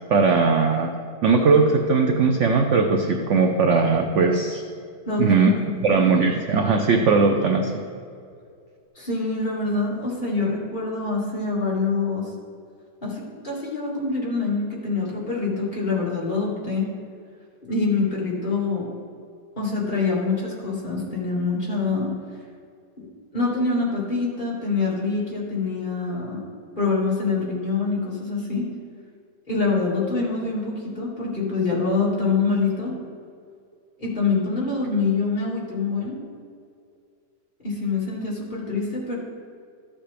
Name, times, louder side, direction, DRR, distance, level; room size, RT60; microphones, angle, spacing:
voice 1, 0.1-0.9 1.2-4.6 5.2-5.5 5.8-7.8, right 4 dB, 65° right, 4 dB, 0.7 m, -19 dB
voice 2, 5.1-6.1 9.0-12.3 13.0-16.8 17.7-18.9 19.6-22.1 23.0-23.1 23.3-26.4 26.8-28.7 29.5-32.9 34.0-36.2 37.6-39.2, left 4 dB, 30° left, -6 dB, 2.3 m, -25 dB
13.5 x 7.3 x 3.4 m, 2.3 s
omnidirectional pair, 1.9 m